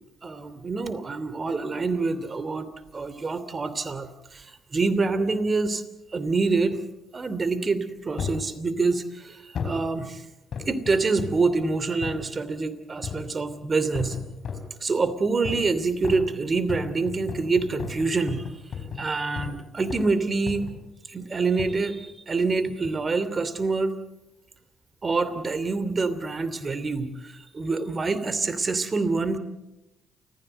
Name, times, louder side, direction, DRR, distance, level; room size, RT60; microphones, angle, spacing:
voice 1, 0.2-2.7 2.9-5.8 6.1-6.8 7.1-10.3 10.7-14.2 14.8-18.5 19.0-20.7 21.1-24.0 25.0-29.4, right 3 dB, 40° right, 13 dB, 2.8 m, -26 dB
sound 1, 8.2-8.5 9.5-9.9 10.5-11.5 12.0-12.2 13.0-13.4 13.9-14.7 15.4-15.7 16.0-19.6 19.9-20.1 20.5-20.9 21.6-21.8 22.7-23.0 23.6-23.7, left 5 dB, 60° left, 4.4 m, -35 dB
29.0 x 15.0 x 8.0 m, 0.98 s
hypercardioid pair, 50°, 0 cm